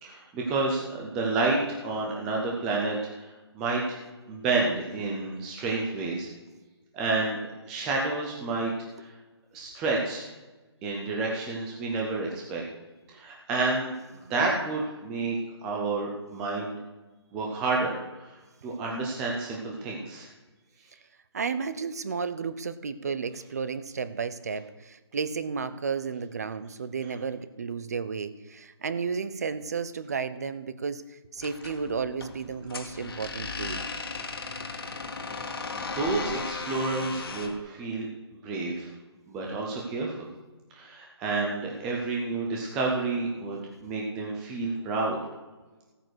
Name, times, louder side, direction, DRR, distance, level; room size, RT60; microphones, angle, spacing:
voice 1, 0.0-4.0 4.3-6.3 6.9-7.4 7.7-8.7 9.0-9.1 9.5-10.3 10.8-12.6 13.1-15.4 15.6-16.8 17.3-18.3 18.6-20.3 35.9-38.1 38.4-38.9 39.3-40.2 40.7-45.2, right 3 dB, 5° right, -2 dB, 0.4 m, -30 dB
voice 2, 21.3-33.8, right 5 dB, 35° right, 13 dB, 0.7 m, -33 dB
sound 1, 31.4-37.6, left 4 dB, 55° left, 1.9 m, -36 dB
15.5 x 9.0 x 6.3 m, 1.2 s
hypercardioid pair, 175°, 15 cm